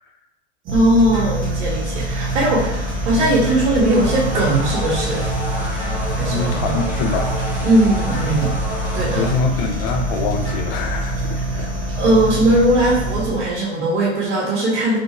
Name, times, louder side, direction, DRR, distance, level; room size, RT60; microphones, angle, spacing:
sound 1, 0.7-11.2, left 1 dB, 10° left, 1.0 m, -34 dB
sound 2, 0.7-13.6, right 1 dB, 35° right, 0.9 m, -25 dB
voice 1, 0.7-5.3 6.2-6.8 7.6-8.5 8.9-9.3 11.3-11.7 11.9-15.0, right 1 dB, 70° right, -6 dB, 1.2 m, -19 dB
sound 3, 3.8-9.3, left 1 dB, 5° right, 1.2 m, -29 dB
voice 2, 6.3-7.3 9.2-11.7, left 5 dB, 50° left, 3 dB, 0.7 m, -25 dB
3.4 x 2.6 x 2.9 m, 0.99 s
hypercardioid pair, 100°, 35 cm